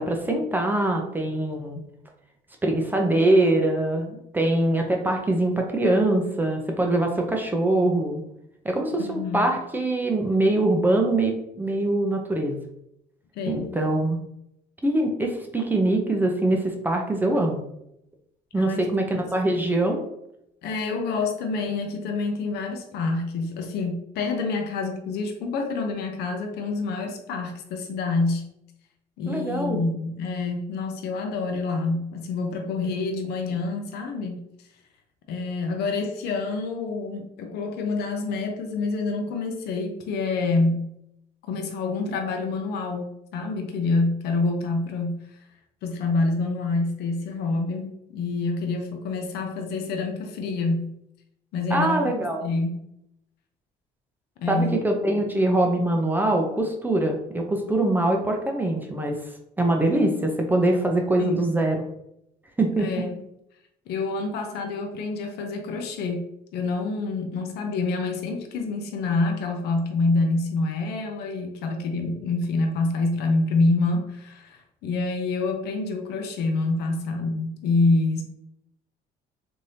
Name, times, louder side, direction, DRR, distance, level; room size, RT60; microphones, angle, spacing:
voice 1, 0.0-1.8 2.6-8.2 8.6-12.6 13.5-14.2 14.8-17.6 18.5-20.0 29.3-29.8 51.7-52.4 54.5-59.2 59.6-61.8 62.6-62.9, right 1 dB, 10° right, 2 dB, 0.5 m, -23 dB
voice 2, 9.0-9.4 13.3-13.7 18.6-18.9 19.1-19.2 20.6-28.4 29.2-34.4 35.3-40.9 41.5-45.4 45.8-50.9 51.5-52.7 54.4-54.8 61.2-61.4 62.8-63.2 63.9-66.3 66.5-78.2, left 3 dB, 75° left, 4 dB, 0.5 m, -27 dB
3.2 x 2.6 x 2.6 m, 0.79 s
cardioid pair, 110°, 17 cm